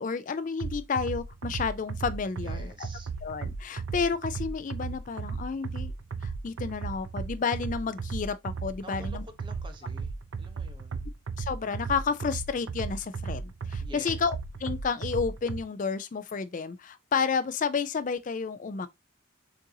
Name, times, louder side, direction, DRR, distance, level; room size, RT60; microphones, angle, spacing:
voice 1, 0.0-2.9 3.2-5.9 6.2-9.2 11.4-18.9, left 5 dB, 40° left, 0.4 m, -31 dB
sound 1, 0.6-15.6, right 5 dB, 70° right, 0.5 m, -35 dB
voice 2, 2.4-3.1 8.8-11.1 13.8-14.2, right 1 dB, 25° right, 0.8 m, -49 dB
6.4 x 2.6 x 2.7 m
head